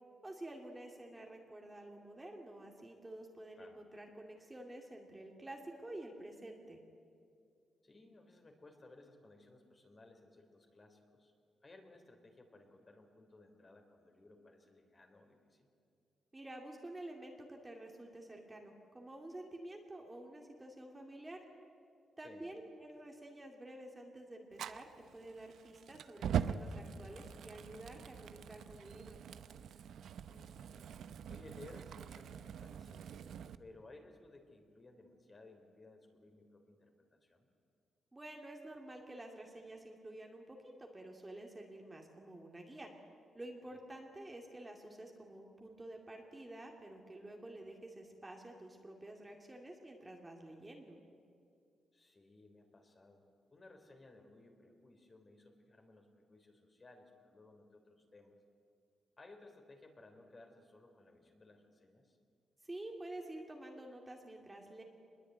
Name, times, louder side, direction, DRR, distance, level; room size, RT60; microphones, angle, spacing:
voice 1, 0.2-6.8 16.3-21.4 22.2-29.2 38.1-42.9 43.3-51.0 62.6-64.8, right 1 dB, 15° right, 1 dB, 2.3 m, -50 dB
voice 2, 7.8-11.3 11.6-15.7 22.2-22.4 30.3-30.9 31.3-37.5 43.7-43.8 51.9-58.4 59.2-62.2, left 2 dB, 25° left, 4 dB, 3.5 m, -59 dB
Fire, 24.5-33.5, right 8 dB, 75° right, 0.8 m, -43 dB
25.5 x 21.5 x 9.2 m, 2.4 s
wide cardioid pair, 140°, 0 cm